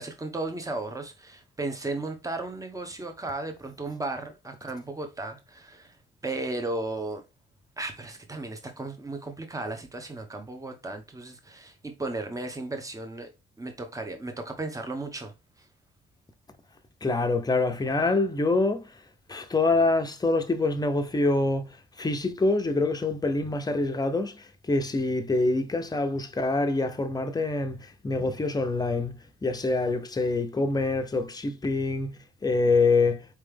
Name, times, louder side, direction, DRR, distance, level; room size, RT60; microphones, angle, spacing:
voice 1, 0.0-6.0 6.2-7.2 7.8-13.3 13.6-15.6, right 2 dB, 15° right, 1.2 m, -35 dB
voice 2, 17.0-18.9 19.3-21.7 22.0-29.1 29.4-32.1 32.4-33.2, left 3 dB, 20° left, 0.8 m, -25 dB
4.4 x 3.3 x 3.5 m
cardioid pair, 90°, 20 cm